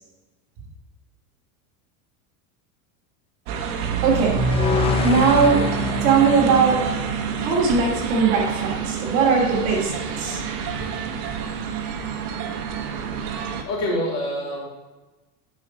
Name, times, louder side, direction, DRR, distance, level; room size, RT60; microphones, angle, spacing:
sound 1, 3.5-13.6, right 6 dB, 90° right, 1.2 m, -27 dB
voice 1, 4.0-4.4 5.0-5.6 6.0-6.8 7.4-10.4, right 5 dB, 60° right, -2 dB, 2.8 m, -19 dB
sound 2, 4.4-7.6, left 5 dB, 15° left, 0.5 m, -26 dB
voice 2, 13.7-14.6, left 1 dB, 35° left, -3 dB, 2.8 m, -25 dB
10.0 x 4.6 x 5.1 m, 1.2 s
supercardioid pair, 155°, 43 cm